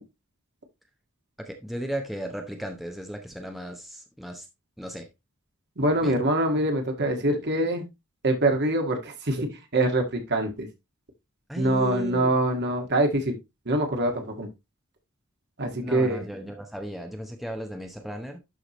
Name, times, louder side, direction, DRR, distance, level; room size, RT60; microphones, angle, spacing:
voice 1, 1.4-4.5 4.8-5.1 6.0-6.2 11.5-12.3 15.8-18.4, right 1 dB, ahead, 0.9 m, -35 dB
voice 2, 5.8-7.8 8.2-10.7 11.6-13.4 13.6-14.5 15.6-16.2, right 1 dB, 55° right, 1.9 m, -24 dB
11.5 x 4.9 x 3.0 m
head